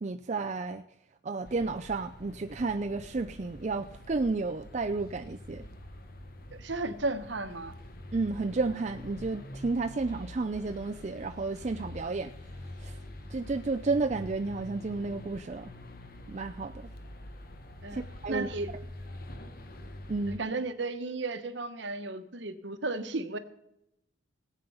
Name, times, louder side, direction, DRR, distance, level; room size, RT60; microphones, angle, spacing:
voice 1, 0.0-0.8 1.2-5.6 8.1-12.3 12.8-13.0 13.3-15.7 16.3-16.9 17.9-18.5 20.1-20.4, right 3 dB, 35° right, 6 dB, 0.4 m, -32 dB
sound 1, 1.4-20.4, left 1 dB, 50° left, 1.1 m, -45 dB
voice 2, 6.5-7.7 17.8-18.0 18.3-18.7 20.3-23.4, right 3 dB, 65° right, 9 dB, 1.1 m, -34 dB
18.0 x 8.4 x 5.5 m, 0.84 s
head